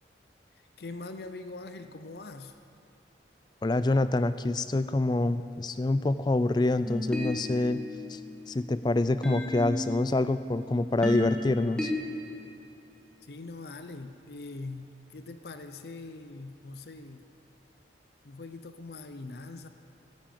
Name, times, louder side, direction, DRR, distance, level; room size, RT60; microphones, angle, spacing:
voice 1, 0.8-2.5 13.3-17.2 18.2-19.7, left 3 dB, 60° left, 9 dB, 0.6 m, -42 dB
voice 2, 3.6-7.8 8.1-8.2 8.5-11.9, left 2 dB, 25° left, 13 dB, 0.3 m, -26 dB
sound 1, 6.8-11.9, left 1 dB, 5° left, 1.7 m, -35 dB
12.5 x 12.0 x 7.5 m, 2.9 s
head